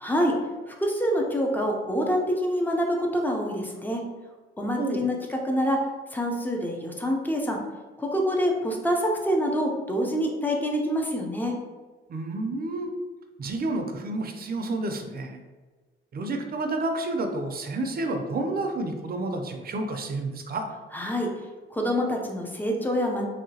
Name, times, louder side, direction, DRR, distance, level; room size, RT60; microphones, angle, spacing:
voice 1, 0.0-0.4 0.7-4.0 4.6-5.8 6.1-7.6 8.0-11.5 20.9-21.3 21.7-23.3, equal, 10° left, 0 dB, 0.6 m, -26 dB
voice 2, 4.8-5.1 12.1-12.9 13.4-15.4 16.1-20.7, right 2 dB, 45° right, 4 dB, 0.5 m, -30 dB
3.0 x 2.8 x 2.8 m, 1.3 s
cardioid pair, 90°, 21 cm